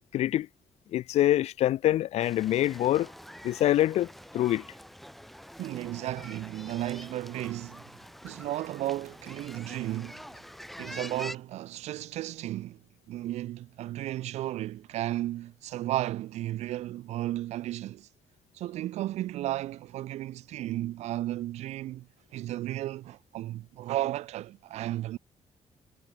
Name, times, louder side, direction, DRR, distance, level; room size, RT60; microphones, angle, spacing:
voice 1, 0.1-0.5 0.9-3.1 3.4-4.6, left 13 dB, 75° left, 0.5 m, -25 dB
sound 1, 2.2-11.4, equal, ahead, 1.5 m, -46 dB
voice 2, 5.6-7.8 8.2-10.2 10.8-12.8 13.1-18.1 18.5-22.1 22.3-25.2, right 14 dB, 90° right, 0.7 m, -34 dB
cardioid pair, 100°, 11 cm